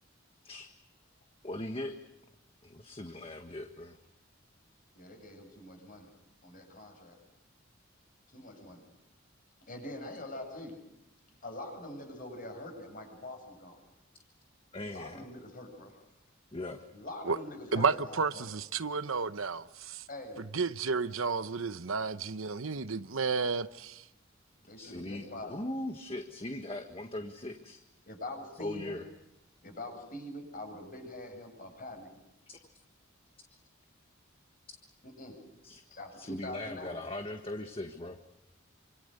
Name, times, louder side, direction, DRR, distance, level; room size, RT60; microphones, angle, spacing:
voice 1, 1.4-2.0 2.6-4.0 14.7-15.2 16.5-16.8 24.8-27.8 28.6-29.0 32.5-32.6 33.5-33.6 35.6-35.8 36.2-38.2, left 1 dB, 30° left, 1.5 m, -39 dB
voice 2, 4.9-6.1 6.4-7.2 8.3-8.8 9.7-10.8 11.4-13.8 14.9-15.9 16.9-18.5 20.1-20.5 24.6-25.6 28.0-29.0 29.6-32.2 35.0-35.4 35.9-37.0, left 1 dB, 45° left, 7.8 m, -44 dB
voice 3, 17.7-20.1 20.5-24.0, right 5 dB, 85° right, 1.0 m, -32 dB
27.5 x 26.5 x 6.7 m
head